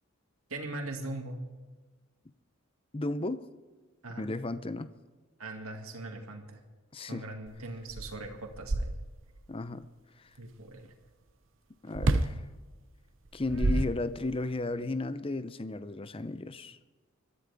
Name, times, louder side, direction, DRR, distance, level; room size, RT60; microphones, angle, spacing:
voice 1, 0.5-1.4 4.0-4.3 5.4-6.6 7.1-8.9 10.4-10.9, right 2 dB, 85° right, 3 dB, 2.3 m, -40 dB
voice 2, 2.9-3.4 4.2-4.9 6.9-7.3 9.5-9.9 11.8-12.4 13.3-16.8, left 2 dB, 25° left, 13 dB, 0.6 m, -34 dB
sound 1, 7.5-7.6 7.9-9.4 11.9-12.4 13.2-14.5, right 2 dB, 65° right, 0.9 m, -29 dB
22.0 x 14.0 x 3.6 m, 1.3 s
head